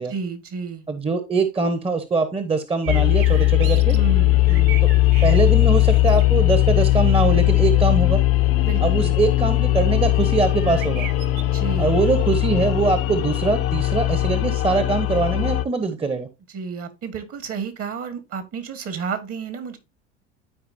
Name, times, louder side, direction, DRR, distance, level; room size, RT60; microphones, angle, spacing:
voice 1, 0.1-0.8 3.9-4.9 8.6-9.2 11.5-11.9 16.5-19.8, right 6 dB, 40° right, 1.7 m, -31 dB
voice 2, 0.9-4.0 4.8-4.9 5.2-8.2 8.8-11.1 11.8-16.3, right 4 dB, 15° right, 1.1 m, -22 dB
sound 1, 2.8-4.0 4.3-5.4 5.8-6.2 10.6-11.4, right 10 dB, 60° right, 1.0 m, -36 dB
sound 2, 2.9-15.6, left 16 dB, 40° left, 0.8 m, -19 dB
12.5 x 4.7 x 2.7 m
hypercardioid pair, 75°, 35 cm